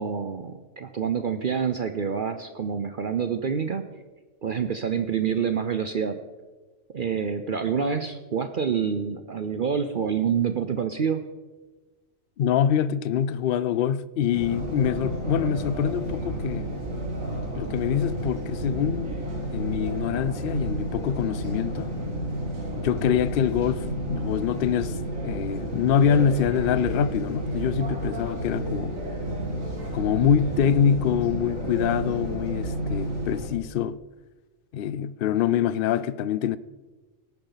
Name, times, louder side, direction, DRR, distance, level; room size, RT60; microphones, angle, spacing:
voice 1, 0.0-3.8 4.4-6.2 6.9-11.2, right 7 dB, 50° right, 0.7 m, -27 dB
voice 2, 12.4-16.7 17.6-19.1 19.5-21.9 22.7-28.9 29.9-34.0 34.7-36.6, left 8 dB, 60° left, 0.6 m, -25 dB
sound 1, 14.3-33.5, right 1 dB, 75° right, 2.2 m, -31 dB
18.5 x 10.5 x 4.0 m
omnidirectional pair, 1.4 m